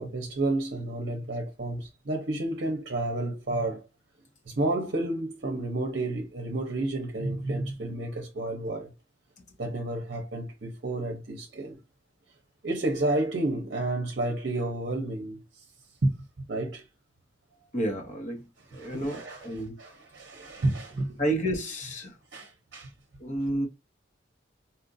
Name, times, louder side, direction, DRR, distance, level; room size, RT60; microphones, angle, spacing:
voice 1, 0.0-3.8 4.5-8.9 9.6-11.8 12.6-15.4 16.0-16.1 16.5-16.9 18.7-19.5 19.8-21.2 22.3-22.9, right 2 dB, 55° right, 0.7 m, -30 dB
voice 2, 17.7-19.8 21.2-22.2 23.2-23.7, right 1 dB, 40° left, 1.1 m, -31 dB
4.3 x 2.5 x 2.6 m
head